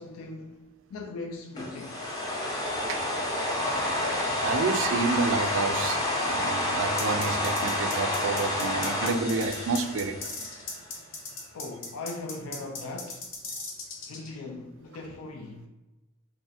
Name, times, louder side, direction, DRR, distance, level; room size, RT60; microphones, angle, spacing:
voice 1, 0.0-2.1 11.5-13.3 14.1-15.7, left 2 dB, 85° left, 0.4 m, -40 dB
sound 1, 1.6-10.8, left 1 dB, 15° left, 0.5 m, -29 dB
voice 2, 4.4-10.2 13.6-13.7, right 4 dB, 65° right, 0.3 m, -29 dB
sound 2, 7.0-14.3, left 3 dB, 65° left, 0.8 m, -37 dB
3.1 x 2.4 x 4.0 m
head